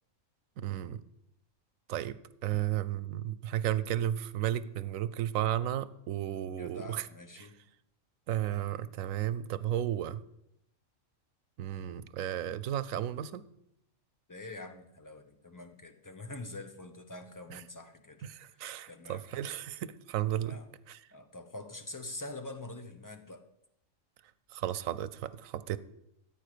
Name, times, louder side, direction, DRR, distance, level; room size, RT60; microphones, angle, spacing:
voice 1, 0.6-1.0 1.9-7.1 7.4-7.5 8.3-10.2 11.6-13.4 17.5-17.6 18.2-20.6 20.9-21.0 24.5-25.8, right 11 dB, 90° right, 16 dB, 1.0 m, -33 dB
voice 2, 6.4-7.5 14.3-18.3 18.9-19.3 20.5-20.7 21.1-23.4, left 2 dB, 15° left, 6 dB, 0.8 m, -45 dB
14.5 x 8.7 x 5.0 m, 0.80 s
omnidirectional pair, 1.4 m